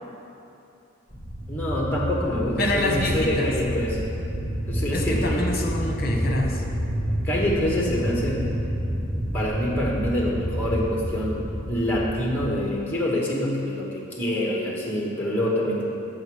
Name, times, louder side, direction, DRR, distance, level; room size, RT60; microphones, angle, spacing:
sound 1, 1.1-12.5, equal, 10° right, 1.6 m, -29 dB
voice 1, 1.5-4.2 4.7-5.5 7.1-8.5 9.1-15.8, left 1 dB, 10° left, -4 dB, 1.0 m, -26 dB
voice 2, 2.6-3.5 4.9-6.6, left 1 dB, 45° left, 1 dB, 0.9 m, -26 dB
7.9 x 5.9 x 4.6 m, 2.8 s
head